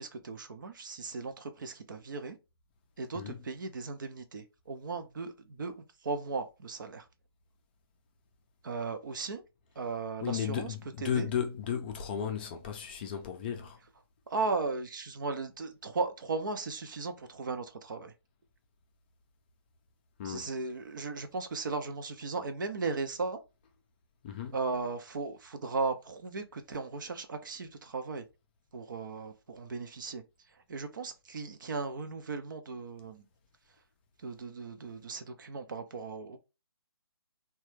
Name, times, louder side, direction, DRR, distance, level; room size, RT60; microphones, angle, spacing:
voice 1, 0.0-2.4 3.0-7.1 8.6-9.4 9.8-11.3 14.3-18.1 20.2-23.4 24.5-28.2 28.7-30.2 30.7-33.3 34.2-36.4, right 4 dB, 50° right, 0.5 m, -36 dB
voice 2, 10.2-13.8 20.2-20.5 24.2-24.6, left 8 dB, 25° left, 0.4 m, -34 dB
3.1 x 2.2 x 3.0 m
figure-of-eight pair, 140°, 13 cm